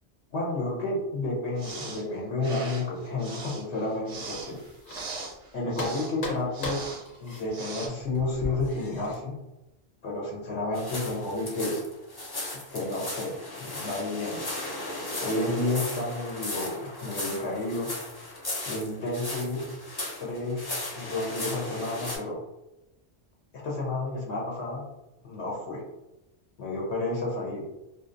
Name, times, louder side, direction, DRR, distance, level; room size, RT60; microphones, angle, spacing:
voice 1, 0.3-4.6 5.5-6.8 7.2-9.4 10.0-11.8 12.7-14.4 15.2-17.9 18.7-19.7 20.2-20.7 21.0-22.4 23.5-24.9 25.2-25.8 26.6-27.6, left 2 dB, 80° left, -3 dB, 0.9 m, -31 dB
sound 1, 1.6-2.0 2.4-6.1 6.5-7.0 7.5-7.9, right 3 dB, 50° right, 0.5 m, -40 dB
sound 2, 4.1-5.4 5.7-9.1, left 2 dB, 50° left, 0.8 m, -38 dB
sound 3, 10.7-22.2, left 2 dB, 35° left, 0.4 m, -36 dB
2.5 x 2.3 x 2.4 m, 0.95 s
omnidirectional pair, 1.1 m